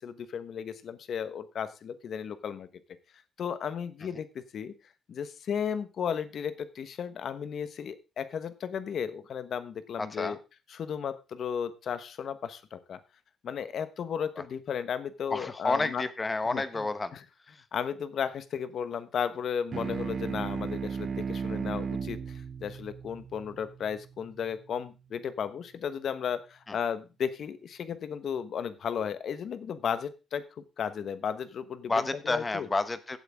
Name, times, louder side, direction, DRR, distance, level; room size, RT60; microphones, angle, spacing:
voice 1, 0.0-2.7 3.4-4.7 5.1-10.4 10.7-13.0 13.4-16.0 16.5-16.8 17.1-17.2 17.7-32.7, left 7 dB, 50° left, 13 dB, 1.2 m, -34 dB
voice 2, 10.0-10.4 15.3-17.1 26.7-26.8 31.9-33.2, left 3 dB, 20° left, 13 dB, 1.0 m, -30 dB
sound 1, 19.7-24.6, right 6 dB, 35° right, 0.7 m, -36 dB
16.0 x 8.2 x 3.6 m, 0.29 s
cardioid pair, 155°, 0 cm